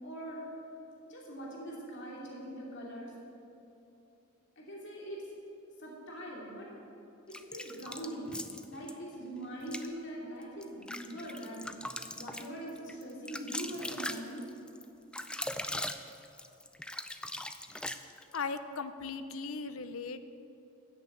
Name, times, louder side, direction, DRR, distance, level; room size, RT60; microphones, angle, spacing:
voice 1, 0.0-0.4 1.1-3.1 4.6-5.2 5.8-6.7 7.3-8.4 8.7-11.7 12.1-14.4, right 1 dB, 55° left, -3 dB, 2.7 m, -42 dB
sound 1, 7.3-8.9 9.6-9.9 10.4-18.4, left 1 dB, 5° left, 0.3 m, -40 dB
voice 2, 18.3-20.2, left 4 dB, 70° left, 11 dB, 0.7 m, -38 dB
14.0 x 6.8 x 8.4 m, 2.8 s
head